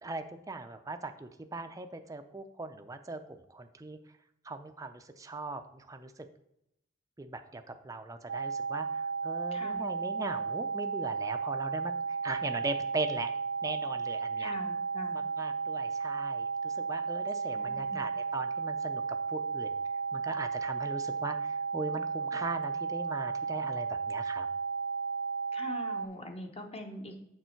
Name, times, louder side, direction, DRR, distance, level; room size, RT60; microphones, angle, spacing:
voice 1, 0.0-4.0 4.4-6.1 7.2-13.3 13.6-14.5 15.1-19.0 19.3-19.7 20.1-24.5, right 2 dB, 15° right, 7 dB, 0.5 m, -39 dB
sound 1, 8.3-26.1, right 5 dB, 80° right, 0.5 m, -34 dB
voice 2, 9.5-9.8 14.4-15.2 17.5-18.1 25.5-27.2, left 1 dB, 30° left, 5 dB, 1.0 m, -43 dB
6.9 x 6.5 x 4.4 m, 0.78 s
head